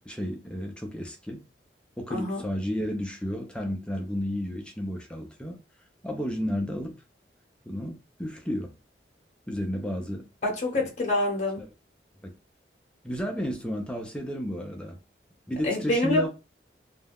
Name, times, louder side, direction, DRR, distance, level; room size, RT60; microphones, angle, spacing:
voice 1, 0.0-1.4 2.0-5.6 6.0-6.9 7.7-8.7 9.5-10.2 10.8-10.9 11.6-11.7 12.2-12.3 13.0-15.0 15.5-16.3, equal, 5° left, 0.3 m, -32 dB
voice 2, 2.1-2.4 10.4-11.6 15.6-16.3, left 2 dB, 40° left, 0.7 m, -26 dB
2.3 x 2.1 x 3.3 m
head